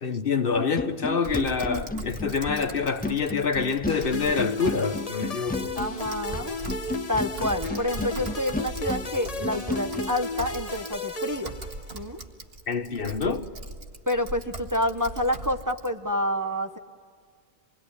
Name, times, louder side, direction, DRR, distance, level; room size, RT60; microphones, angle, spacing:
voice 1, 0.0-5.8 12.7-13.4, left 5 dB, 55° left, 1.2 m, -26 dB
sound 1, 0.5-10.1, left 2 dB, 10° left, 0.5 m, -33 dB
Typing, 1.2-15.9, right 2 dB, 65° right, 1.9 m, -40 dB
sound 2, 3.9-12.2, left 2 dB, 35° left, 1.1 m, -35 dB
voice 2, 5.7-6.6 7.1-11.6 11.9-12.2 14.1-16.8, left 1 dB, 20° right, 0.9 m, -28 dB
27.0 x 21.0 x 9.8 m
omnidirectional pair, 1.1 m